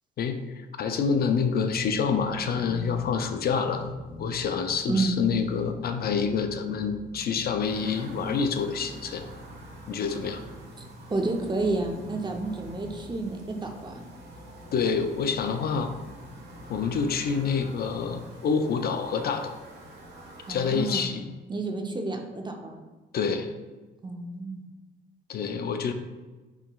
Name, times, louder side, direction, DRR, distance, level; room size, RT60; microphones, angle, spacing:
voice 1, 0.2-3.9 4.2-9.2 9.9-10.4 14.7-15.9 16.7-19.5 20.5-21.3 23.1-23.5 25.3-25.9, left 6 dB, 50° left, 7 dB, 0.4 m, -27 dB
sound 1, 1.7-18.3, left 1 dB, 80° left, 0.8 m, -47 dB
sound 2, 7.6-21.1, right 2 dB, 55° right, 1.3 m, -48 dB
voice 2, 10.8-14.0 20.5-21.0 21.5-22.8 24.0-24.6, right 3 dB, 25° right, 3 dB, 0.5 m, -30 dB
5.7 x 2.9 x 2.3 m, 1.2 s
cardioid pair, 90°, 20 cm